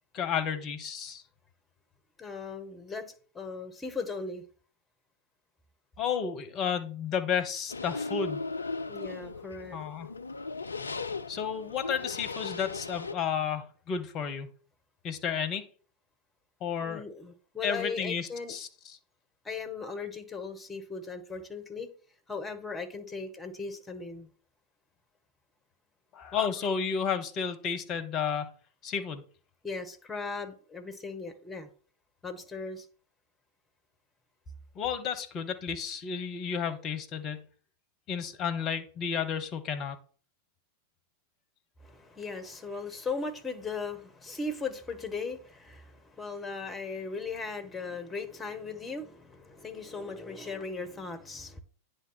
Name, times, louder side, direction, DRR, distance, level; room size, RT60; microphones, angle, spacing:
voice 1, 0.1-1.2 6.0-8.4 9.7-10.1 11.3-14.5 15.0-15.7 16.6-17.0 17.6-18.7 26.1-28.5 28.8-29.2 34.7-37.5 38.1-40.0, left 7 dB, 35° left, 10 dB, 1.0 m, -32 dB
voice 2, 2.2-4.4 8.9-9.8 10.8-10.9 16.8-18.6 19.4-21.9 22.3-24.3 29.6-31.7 32.2-32.9 41.8-51.6, left 4 dB, 15° left, 8 dB, 1.2 m, -38 dB
sound 1, 7.7-13.1, left 4 dB, 75° left, 0.4 m, -37 dB
9.1 x 3.4 x 5.7 m, 0.42 s
figure-of-eight pair, 90°, 0 cm